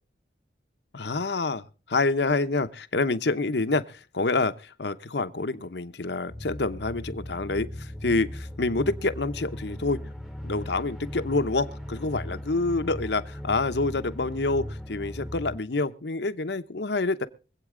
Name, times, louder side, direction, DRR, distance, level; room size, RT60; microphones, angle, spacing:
voice 1, 0.9-10.0 10.4-17.3, left 3 dB, 75° left, 0.9 m, -27 dB
sound 1, 6.3-15.6, left 1 dB, ahead, 1.0 m, -38 dB
24.0 x 8.4 x 3.8 m
head